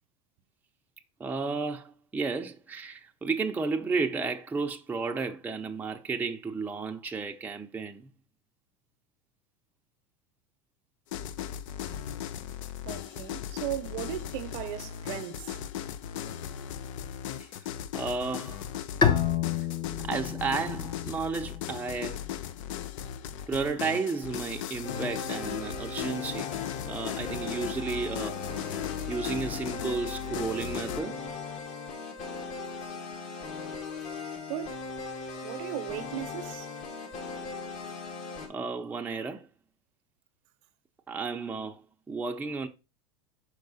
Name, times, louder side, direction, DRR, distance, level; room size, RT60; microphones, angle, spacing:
voice 1, 1.2-8.1 17.4-17.5 17.9-18.7 20.0-22.2 23.5-26.5 26.9-28.4 29.1-31.2 38.5-39.5 41.1-41.8 42.1-42.7, right 4 dB, 10° right, 0.6 m, -32 dB
sound 1, 11.1-31.0, left 10 dB, 70° left, 0.6 m, -37 dB
voice 2, 12.8-15.6 34.5-34.9 35.4-36.7, right 12 dB, 55° right, 0.8 m, -37 dB
Bowed string instrument, 19.0-22.5, left 7 dB, 25° left, 0.9 m, -30 dB
sound 2, 24.8-38.5, left 4 dB, 40° left, 1.9 m, -39 dB
6.0 x 4.7 x 4.0 m
supercardioid pair, 125°, 17 cm